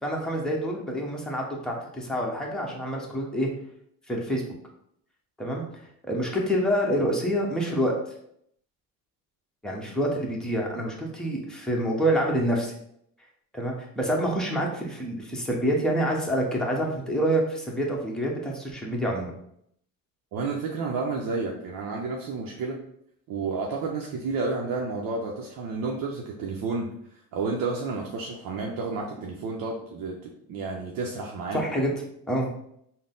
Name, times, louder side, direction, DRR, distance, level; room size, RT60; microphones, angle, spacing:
voice 1, 0.0-3.5 4.1-4.4 5.4-5.6 6.0-7.9 9.6-12.7 13.5-19.3 31.5-31.9 32.3-32.5, equal, ahead, -2 dB, 0.9 m, -27 dB
voice 2, 20.3-22.8 23.3-26.9 27.3-31.6, right 4 dB, 65° right, 0 dB, 0.7 m, -31 dB
3.9 x 2.1 x 3.7 m, 0.71 s
cardioid pair, 90°, 37 cm